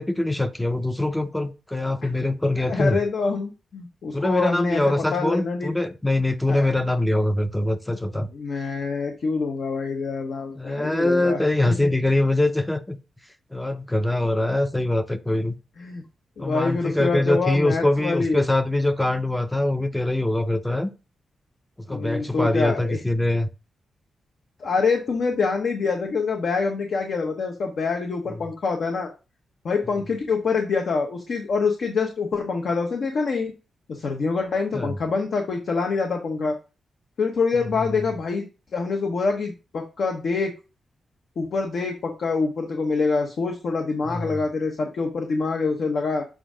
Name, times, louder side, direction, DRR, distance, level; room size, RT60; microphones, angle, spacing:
voice 1, 0.0-3.0 4.1-8.3 10.6-13.0 13.5-15.6 16.4-20.9 21.8-23.5 28.3-28.4 34.7-35.0 37.8-37.9 44.0-44.4, left 1 dB, 5° left, 0.5 m, -23 dB
voice 2, 2.7-4.8 5.1-5.7 6.5-6.7 8.3-11.4 11.7-11.8 15.8-16.0 16.4-18.4 21.9-23.0 24.6-29.1 29.6-33.5 33.9-36.6 37.2-38.5 38.7-40.5 41.4-46.3, left 4 dB, 60° left, 1.0 m, -25 dB
7.7 x 2.6 x 4.9 m
wide cardioid pair, 120°, 0 cm